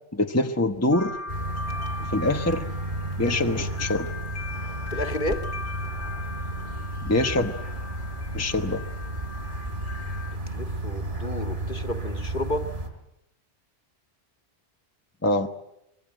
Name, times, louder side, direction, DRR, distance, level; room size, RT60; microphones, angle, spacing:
voice 1, 0.1-1.2 2.0-2.7 3.2-4.1 7.0-7.5 8.3-8.8 15.2-15.5, left 1 dB, 15° left, 5 dB, 1.1 m, -24 dB
Crackle, 0.7-6.0, equal, 30° right, 2.5 m, -45 dB
sound 1, 0.9-10.4, left 3 dB, 85° left, 2.0 m, -39 dB
sound 2, 1.3-12.9, right 1 dB, 45° right, 4.5 m, -33 dB
voice 2, 4.9-5.4 10.5-12.6, left 1 dB, 45° left, 7 dB, 2.1 m, -31 dB
25.5 x 23.5 x 8.9 m, 0.82 s
omnidirectional pair, 1.2 m